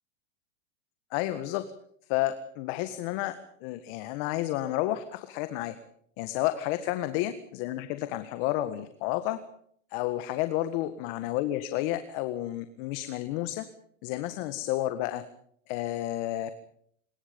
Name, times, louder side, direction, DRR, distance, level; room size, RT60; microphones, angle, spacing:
voice 1, 1.1-1.7 2.1-5.8 6.2-9.4 9.9-13.7 14.0-15.2 15.7-16.5, left 14 dB, 50° left, 11 dB, 1.8 m, -31 dB
25.0 x 21.5 x 5.4 m, 0.66 s
supercardioid pair, 135°, 37 cm